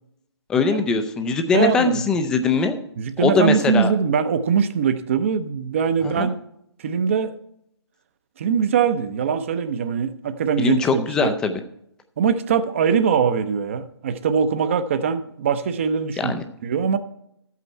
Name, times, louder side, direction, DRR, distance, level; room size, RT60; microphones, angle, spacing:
voice 1, 0.5-2.8 3.2-3.9 6.0-6.3 10.6-11.6 16.2-16.4, left 4 dB, 5° left, 7 dB, 0.5 m, -21 dB
voice 2, 1.5-2.1 3.0-6.3 6.8-7.3 8.4-11.3 12.2-17.0, right 6 dB, 30° right, 11 dB, 0.7 m, -22 dB
13.0 x 8.4 x 4.4 m, 0.76 s
figure-of-eight pair, 140°, 14 cm